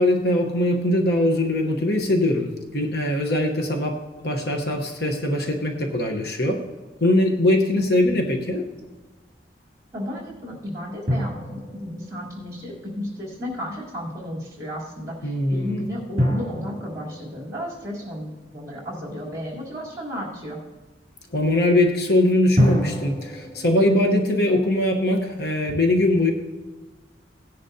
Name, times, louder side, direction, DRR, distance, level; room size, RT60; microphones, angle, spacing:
voice 1, 0.0-6.6 7.0-8.7 15.2-15.8 21.3-26.3, left 1 dB, 55° left, 2 dB, 1.0 m, -21 dB
voice 2, 9.9-20.6, equal, 15° right, -4 dB, 3.4 m, -33 dB
sound 1, 11.1-13.3 16.2-19.1 22.6-24.5, equal, 40° right, 2.6 m, -28 dB
18.0 x 10.0 x 2.8 m, 1.3 s
head